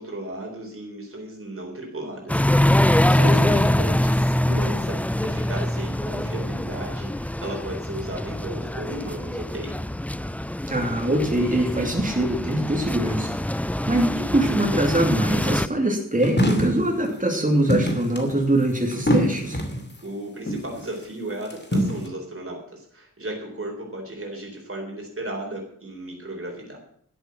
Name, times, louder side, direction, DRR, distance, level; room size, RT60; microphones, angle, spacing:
voice 1, 0.0-2.4 2.8-9.7 20.0-26.8, right 1 dB, 40° right, 0 dB, 3.9 m, -35 dB
sound 1, 2.3-15.7, left 1 dB, 5° left, 0.4 m, -24 dB
voice 2, 10.7-19.6, right 1 dB, 25° right, 0 dB, 3.0 m, -23 dB
sound 2, 16.2-16.9 17.7-19.9 20.5-20.8 21.3-22.1, equal, 35° left, 2.5 m, -23 dB
12.5 x 8.1 x 7.7 m, 0.64 s
wide cardioid pair, 80°, 33 cm